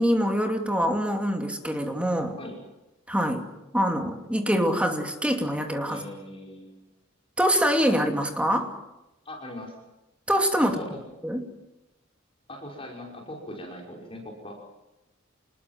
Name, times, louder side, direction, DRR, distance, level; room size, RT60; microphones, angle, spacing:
voice 1, 0.0-2.4 3.1-3.4 3.7-6.0 7.4-8.7 10.3-10.8 11.2-11.5, equal, 5° right, 4 dB, 2.6 m, -24 dB
voice 2, 5.9-6.9 9.3-9.7 10.6-11.0 12.5-14.6, left 1 dB, 30° left, 1 dB, 5.8 m, -40 dB
28.0 x 21.0 x 7.6 m, 0.95 s
head